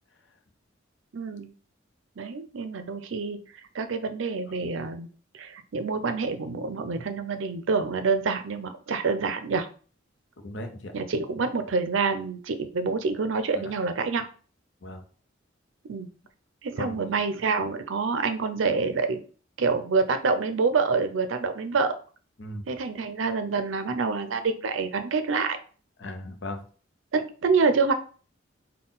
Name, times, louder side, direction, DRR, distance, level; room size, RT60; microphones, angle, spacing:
voice 1, 1.1-1.5 2.2-3.4 3.7-5.1 5.3-9.7 10.9-14.3 15.9-16.1 16.6-19.2 19.6-21.9 22.7-25.6 27.1-27.9, right 4 dB, 85° right, 9 dB, 0.5 m, -27 dB
voice 2, 10.4-10.9 13.5-13.8 14.8-15.0 16.8-17.1 22.4-22.7 26.0-26.6, left 1 dB, 65° left, 6 dB, 0.7 m, -37 dB
3.8 x 2.3 x 3.9 m, 0.40 s
head